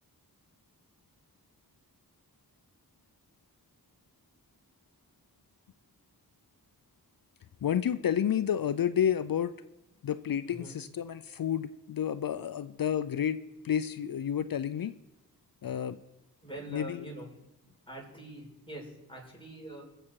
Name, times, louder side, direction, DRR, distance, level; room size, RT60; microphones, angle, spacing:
voice 1, 7.6-9.5 10.0-13.4 13.6-14.9 15.6-16.0 16.7-17.0, left 9 dB, 65° left, 13 dB, 0.5 m, -30 dB
voice 2, 10.5-10.8 16.4-17.3 17.6-19.8, right 1 dB, 15° left, -1 dB, 5.6 m, -44 dB
21.0 x 7.7 x 4.6 m, 0.94 s
cardioid pair, 50°, 37 cm